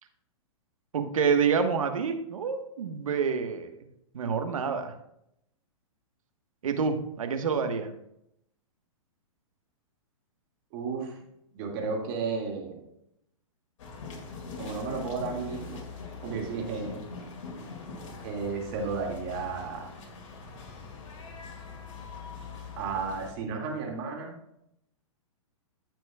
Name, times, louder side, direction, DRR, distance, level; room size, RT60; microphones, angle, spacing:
voice 1, 0.9-3.8 4.1-4.9 6.6-7.9, right 6 dB, 80° right, 6 dB, 1.3 m, -27 dB
voice 2, 10.7-11.2 11.5-12.8 14.6-15.8 16.2-17.0 18.2-19.9 22.8-24.3, right 4 dB, 45° right, 1 dB, 2.2 m, -33 dB
sound 1, 13.8-23.3, left 4 dB, 65° left, 2.3 m, -42 dB
15.0 x 6.1 x 2.3 m, 0.78 s
hypercardioid pair, 130°, 17 cm